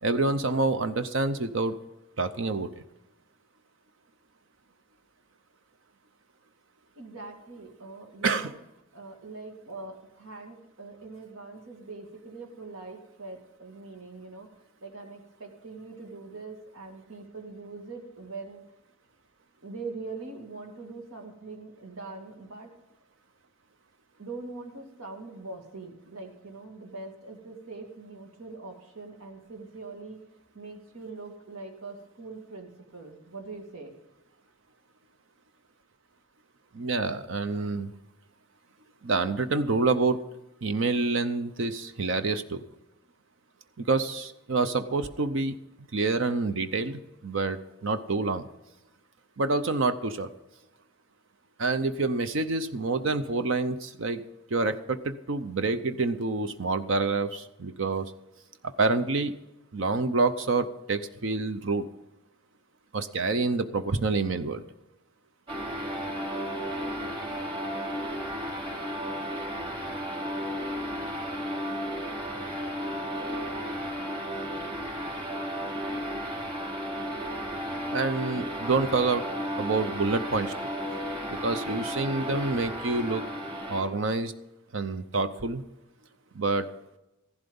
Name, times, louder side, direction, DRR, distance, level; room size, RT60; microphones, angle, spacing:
voice 1, 0.0-1.8 2.2-2.7 8.2-8.5 36.7-37.9 39.0-40.2 40.6-42.6 43.8-45.6 45.9-48.4 49.4-50.3 51.6-54.2 54.5-58.1 58.6-59.3 59.7-61.9 62.9-64.6 77.9-79.2 79.6-80.5 81.3-83.3 83.7-84.3 84.7-85.6 86.3-86.7, right 3 dB, 65° right, 10 dB, 0.7 m, -27 dB
voice 2, 6.9-8.5 8.9-14.5 14.8-18.6 19.6-22.7 24.2-30.2 30.5-33.9, right 3 dB, 85° right, 3 dB, 2.3 m, -42 dB
sound 1, 65.5-83.9, equal, 25° right, 2.6 m, -34 dB
15.0 x 11.5 x 5.4 m, 0.95 s
head